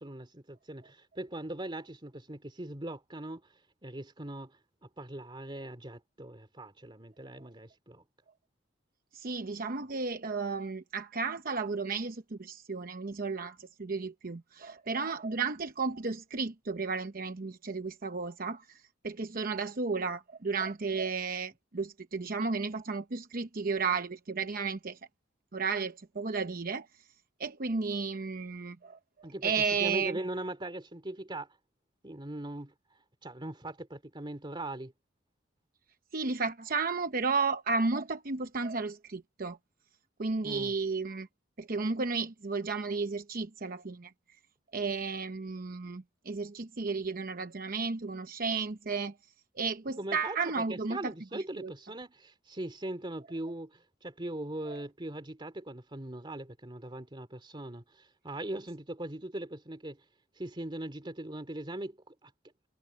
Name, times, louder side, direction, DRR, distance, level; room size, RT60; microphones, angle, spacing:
voice 1, 0.0-3.5 3.8-4.6 5.0-8.0 29.2-31.5 32.0-32.7 33.2-34.9 40.4-40.8 50.0-60.0 60.4-62.3, right 1 dB, 25° right, 2.7 m, -40 dB
voice 2, 9.1-18.8 19.0-25.0 25.5-26.9 27.4-29.0 29.4-30.2 36.1-39.6 40.2-41.3 41.6-44.1 44.7-49.1 49.6-51.7, right 4 dB, 50° right, 0.9 m, -33 dB
head